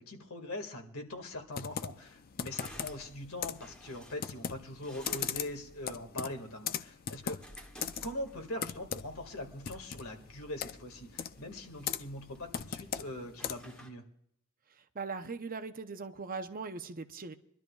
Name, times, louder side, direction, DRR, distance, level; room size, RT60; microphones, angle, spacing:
voice 1, 0.0-7.4 8.0-14.0, left 1 dB, 70° left, 5 dB, 1.9 m, -42 dB
sound 1, 1.1-13.9, equal, 5° left, 1.5 m, -56 dB
Computer keyboard, 1.5-13.8, left 8 dB, 40° left, 0.4 m, -40 dB
voice 2, 14.9-17.3, right 4 dB, 40° right, 9 dB, 0.7 m, -40 dB
25.0 x 12.0 x 2.3 m, 0.71 s
head